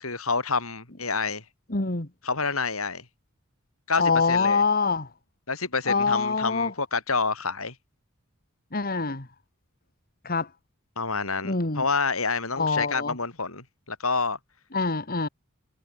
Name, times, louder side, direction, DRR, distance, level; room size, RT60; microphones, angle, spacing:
voice 1, 0.0-1.4 2.2-3.0 3.9-4.0 4.3-4.6 5.5-7.7 11.0-14.4, left 4 dB, 75° left, 6.5 m, -28 dB
voice 2, 1.7-2.1 4.0-5.1 5.9-6.7 8.7-9.3 10.2-10.5 11.4-11.8 12.6-13.2 14.7-15.3, left 4 dB, 45° left, 2.2 m, -25 dB
head